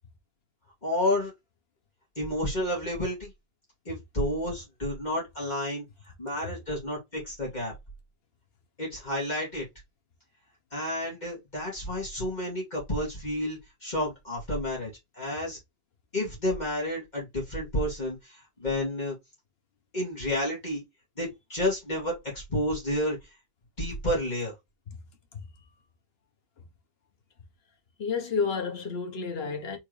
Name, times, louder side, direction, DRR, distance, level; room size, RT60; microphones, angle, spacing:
voice 1, 0.8-1.3 2.2-3.3 3.9-5.8 6.2-7.7 8.8-9.7 10.7-14.9 15.2-15.6 16.1-19.1 19.9-20.8 21.2-23.2 23.8-24.5, left 1 dB, 45° left, 2.4 m, -30 dB
voice 2, 28.0-29.8, left 5 dB, 70° left, 1.3 m, -30 dB
4.6 x 3.6 x 3.2 m
omnidirectional pair, 1.1 m